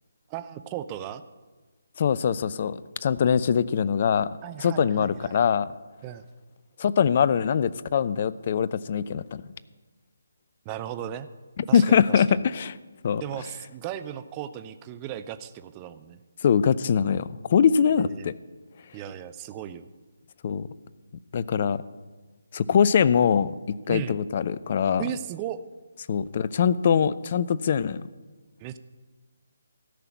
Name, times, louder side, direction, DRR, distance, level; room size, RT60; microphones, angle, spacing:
voice 1, 0.3-1.2 4.4-5.4 6.0-6.3 10.6-11.3 11.7-12.4 13.2-16.2 18.0-18.3 18.9-19.9 23.9-24.2 25.0-25.6 28.6-28.8, right 11 dB, 20° right, 12 dB, 0.5 m, -36 dB
voice 2, 2.0-4.3 4.6-5.7 6.8-9.4 11.6-12.7 13.0-13.2 16.4-18.3 20.4-20.7 21.3-21.8 22.5-23.5 23.9-25.0 26.1-28.1, left 7 dB, 40° left, 17 dB, 0.5 m, -23 dB
13.5 x 5.8 x 9.3 m, 1.3 s
figure-of-eight pair, 145°, 0 cm